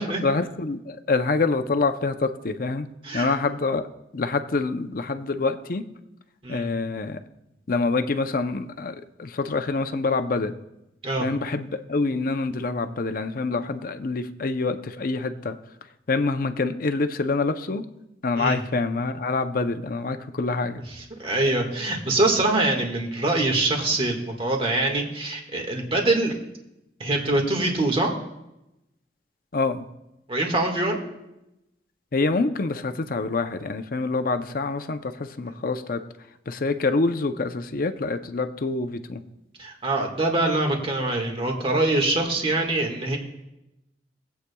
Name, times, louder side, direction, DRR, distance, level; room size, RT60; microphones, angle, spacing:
voice 1, 0.0-2.9 3.1-3.9 4.1-5.9 6.5-7.2 7.7-10.5 11.2-15.6 16.1-17.8 18.2-20.8 29.5-29.9 32.1-36.0 36.5-39.2, left 3 dB, 50° left, 8 dB, 0.6 m, -26 dB
voice 2, 3.0-3.3 6.4-6.7 11.0-11.3 18.4-18.6 21.0-26.3 27.0-28.1 30.3-31.0 39.6-43.2, right 2 dB, 30° right, 2 dB, 1.7 m, -24 dB
22.5 x 8.2 x 2.3 m, 0.90 s
head